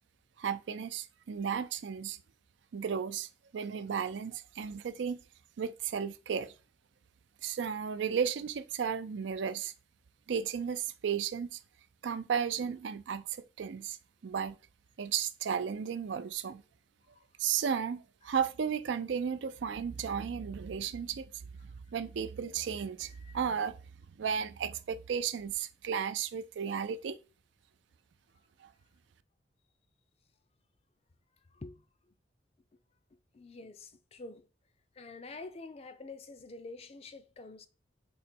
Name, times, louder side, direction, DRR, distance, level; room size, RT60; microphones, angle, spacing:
voice 1, 0.4-2.2 2.7-5.2 5.6-6.5 7.4-9.7 10.3-11.6 12.0-14.0 14.2-14.6 15.0-16.6 17.4-21.3 21.9-23.8 24.2-27.2 28.6-28.7, right 7 dB, 75° right, 0.4 m, -34 dB
voice 2, 23.1-23.4 31.5-31.9 33.3-34.5 34.9-37.7, left 3 dB, 35° left, 0.4 m, -47 dB
4.0 x 3.0 x 4.3 m
head